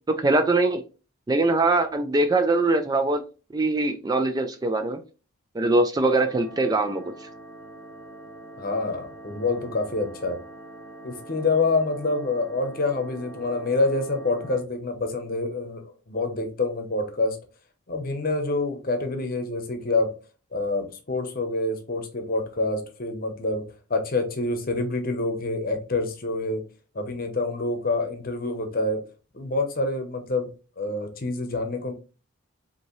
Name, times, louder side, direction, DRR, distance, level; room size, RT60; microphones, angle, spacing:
voice 1, 0.2-0.8 1.3-3.2 3.5-5.0 5.5-7.3, right 2 dB, 20° right, 7 dB, 0.3 m, -22 dB
sound 1, 5.9-14.6, right 2 dB, 10° left, 0.9 m, -44 dB
voice 2, 8.6-10.4 11.0-17.4 17.9-20.1 20.5-26.6 26.9-29.0 29.3-30.5 30.8-31.9, left 2 dB, 45° left, 6 dB, 0.8 m, -27 dB
5.2 x 2.8 x 3.1 m, 0.33 s
head